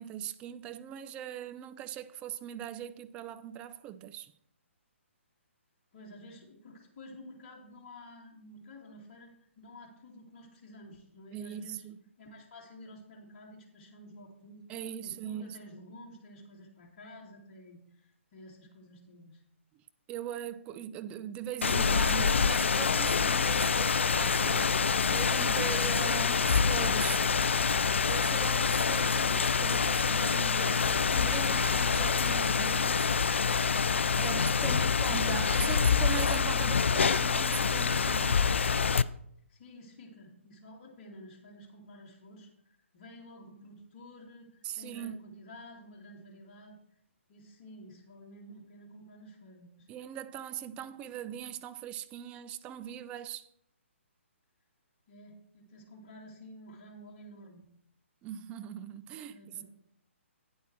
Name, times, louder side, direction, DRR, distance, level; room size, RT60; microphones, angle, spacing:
voice 1, 0.0-4.3 11.3-12.0 14.7-15.6 20.1-27.3 28.0-33.1 34.2-38.5 44.6-45.3 49.9-53.5 58.2-59.6, right 10 dB, 15° right, 0.4 m, -40 dB
voice 2, 5.9-9.3 9.6-11.8 12.2-14.6 15.0-19.4 39.5-46.8 47.3-49.9 55.1-57.7 59.3-59.6, left 1 dB, 35° left, 2.4 m, -51 dB
Rain, 21.6-39.0, left 6 dB, 65° left, 0.4 m, -26 dB
9.3 x 8.2 x 4.4 m
figure-of-eight pair, 130°, 7 cm